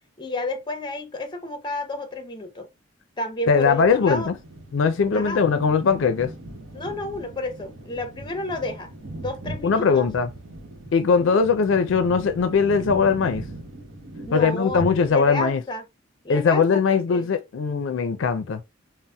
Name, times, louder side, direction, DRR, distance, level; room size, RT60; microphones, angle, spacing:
voice 1, 0.2-2.7 3.2-4.3 5.1-5.4 6.7-8.9 9.2-10.1 11.2-11.4 14.3-15.8 16.2-17.3, left 2 dB, 25° left, 0.5 m, -31 dB
voice 2, 3.5-4.3 4.7-6.3 9.6-10.3 10.9-13.4 14.3-15.6 16.3-18.6, left 5 dB, 70° left, 0.4 m, -20 dB
sound 1, 3.6-15.5, right 1 dB, 75° right, 0.9 m, -39 dB
4.0 x 2.0 x 2.2 m
head